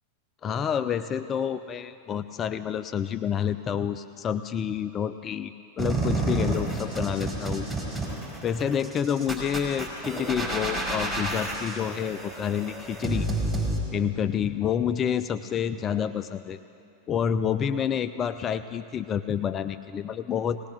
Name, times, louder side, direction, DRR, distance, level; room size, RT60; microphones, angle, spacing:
voice 1, 0.4-7.7 8.4-13.3 13.9-16.6 17.1-20.6, left 8 dB, 25° left, 12 dB, 0.4 m, -28 dB
sound 1, 5.8-13.8, right 2 dB, ahead, 4.9 m, -30 dB
20.0 x 19.0 x 3.4 m, 2.7 s
figure-of-eight pair, 90°, 0 cm